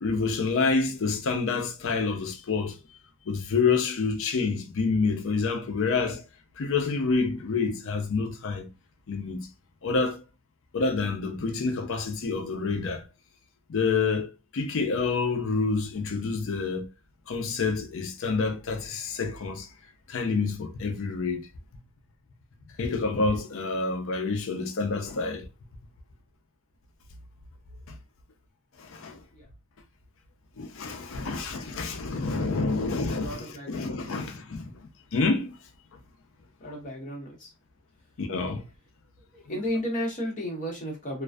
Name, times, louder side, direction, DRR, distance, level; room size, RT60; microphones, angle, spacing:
voice 1, 0.0-3.0 3.3-6.2 6.6-8.7 9.1-9.5 9.8-10.2 10.7-13.0 13.7-16.9 17.3-19.7 20.1-21.5 22.8-25.5 27.9-28.0 28.8-29.2 30.6-35.5 38.2-38.6, left 4 dB, 60° left, 0.5 m, -28 dB
voice 2, 31.0-32.3 32.6-32.8 33.2-34.2 36.6-37.5 38.4-38.5 39.2-41.2, equal, 35° left, 0.9 m, -35 dB
2.4 x 2.3 x 2.2 m
head